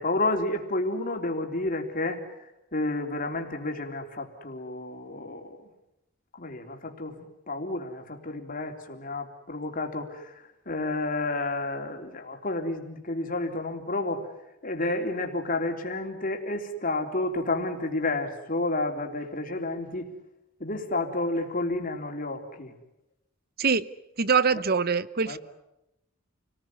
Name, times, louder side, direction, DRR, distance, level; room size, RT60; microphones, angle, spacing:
voice 1, 0.0-5.7 6.3-14.3 14.6-20.1 20.6-22.7 25.3-25.4, left 2 dB, 45° left, 4 dB, 3.6 m, -31 dB
voice 2, 24.2-25.4, right 5 dB, 50° right, 17 dB, 0.9 m, -23 dB
29.0 x 20.0 x 9.8 m, 0.89 s
head